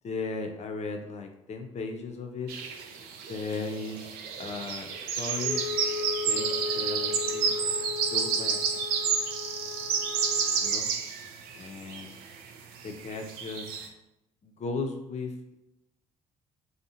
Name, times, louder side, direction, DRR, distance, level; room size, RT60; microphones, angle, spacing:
voice 1, 0.0-2.5 3.3-4.9 5.2-5.6 6.2-7.6 8.1-8.8 10.6-10.9 11.6-12.1 12.8-13.8 14.4-15.5, left 3 dB, 40° left, 4 dB, 0.5 m, -36 dB
sound 1, 2.5-12.5 12.7-13.9, right 6 dB, 70° right, 0.4 m, -30 dB
Wind instrument woodwind instrument, 5.4-10.7, left 5 dB, 15° right, 0.6 m, -36 dB
2.5 x 2.4 x 2.8 m, 0.91 s
hypercardioid pair, 50°, 17 cm